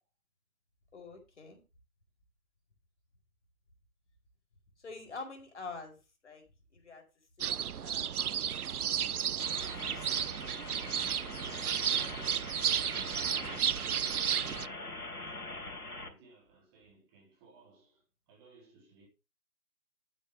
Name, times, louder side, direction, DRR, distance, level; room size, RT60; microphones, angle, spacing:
voice 1, 0.9-1.6 4.8-6.0 6.2-6.4 6.7-7.0 7.4-8.6 9.3-10.3, left 4 dB, 50° left, 4.8 m, -47 dB
sound 1, 7.4-14.7, right 9 dB, 75° right, 0.6 m, -33 dB
sound 2, 9.4-16.1, left 2 dB, 80° left, 4.3 m, -43 dB
voice 2, 14.1-14.9 15.6-15.7 16.0-19.1, right 3 dB, 15° right, 3.2 m, -62 dB
12.5 x 8.8 x 3.5 m
figure-of-eight pair, 150°, 45 cm